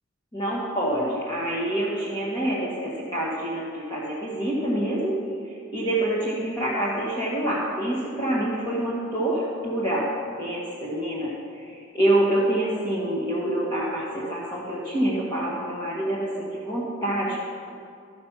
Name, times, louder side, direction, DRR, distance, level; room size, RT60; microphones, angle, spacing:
voice 1, 0.3-5.2 5.7-10.1 10.4-17.4, right 1 dB, 20° left, -7 dB, 1.4 m, -26 dB
12.5 x 6.3 x 5.9 m, 2.5 s
head